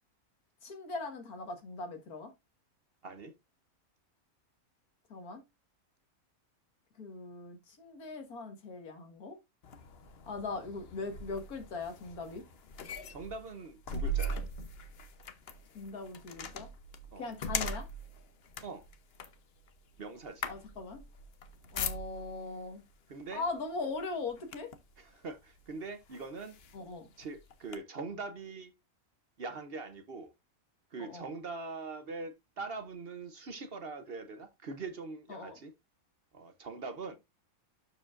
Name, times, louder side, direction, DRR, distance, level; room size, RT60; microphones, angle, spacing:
voice 1, 0.6-2.3 5.1-5.4 7.0-9.4 10.3-12.4 15.7-16.7 17.2-17.9 20.5-21.0 21.7-22.8 23.3-24.7 26.7-27.1 31.0-31.3 35.3-35.6, left 3 dB, 85° left, 2.1 m, -40 dB
sound 1, 9.6-22.5 23.3-23.5 23.9-24.9 25.6-25.7 26.1-27.8, equal, 50° left, 1.0 m, -40 dB
voice 2, 13.1-14.4 17.1-17.3 18.6-18.8 20.0-20.5 23.1-23.4 25.0-26.5 27.2-28.7 29.4-30.3 30.9-35.7 36.3-37.2, right 3 dB, 50° right, 0.9 m, -42 dB
12.0 x 4.9 x 2.5 m
omnidirectional pair, 1.5 m